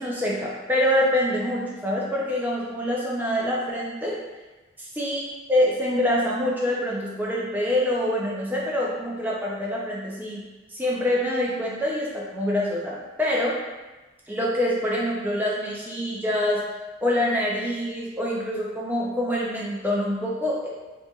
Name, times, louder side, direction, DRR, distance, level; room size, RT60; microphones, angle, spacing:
voice 1, 0.0-4.2 4.8-5.2 5.5-10.4 10.7-13.5 14.3-16.6 17.0-20.7, left 1 dB, 10° right, -5 dB, 0.4 m, -25 dB
4.2 x 2.6 x 2.3 m, 1.2 s
head